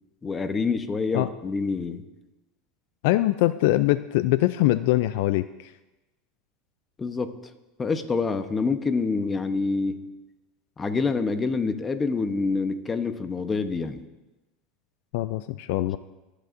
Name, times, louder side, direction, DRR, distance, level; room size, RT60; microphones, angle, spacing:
voice 1, 0.2-2.0 7.0-7.3 7.8-10.0 10.8-14.0, left 4 dB, 20° left, 9 dB, 0.9 m, -26 dB
voice 2, 3.0-5.7 15.1-16.0, left 16 dB, 70° left, 14 dB, 0.3 m, -23 dB
24.0 x 8.1 x 2.6 m, 1.0 s
supercardioid pair, 120°, 0 cm